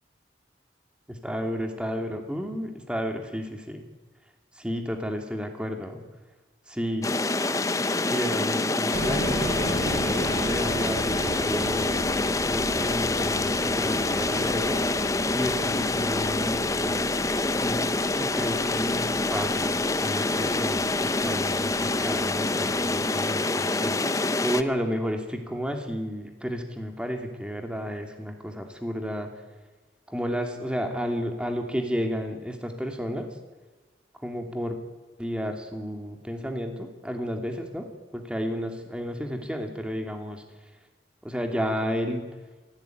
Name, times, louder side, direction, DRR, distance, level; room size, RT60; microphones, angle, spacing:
voice 1, 1.1-3.8 4.5-6.0 6.7-7.1 8.0-11.9 12.4-17.1 17.5-24.0 24.4-29.3 30.1-33.4 34.2-34.8 35.2-37.9 38.1-40.4 41.2-42.3, equal, 5° right, 4 dB, 2.8 m, -32 dB
sound 1, 7.0-24.6, left 2 dB, 20° left, 0.7 m, -26 dB
sound 2, 8.9-23.0, right 1 dB, 70° right, 6.7 m, -37 dB
25.0 x 16.5 x 9.4 m, 1.3 s
head